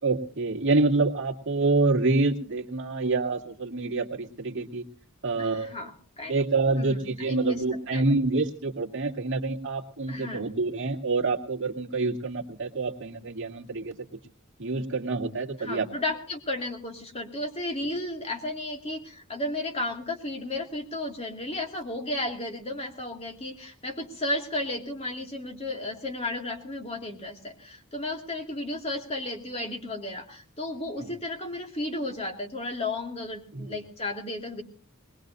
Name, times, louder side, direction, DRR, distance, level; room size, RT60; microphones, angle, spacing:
voice 1, 0.0-4.8 5.2-5.7 6.3-13.9 14.6-15.9 31.0-31.1 33.5-33.8, right 3 dB, 60° right, 0 dB, 2.2 m, -27 dB
voice 2, 5.4-5.9 6.2-6.4 6.7-7.6 7.9-8.0 10.1-10.5 15.6-34.6, left 2 dB, 30° left, 2 dB, 2.4 m, -33 dB
21.5 x 21.0 x 2.7 m, 0.40 s
head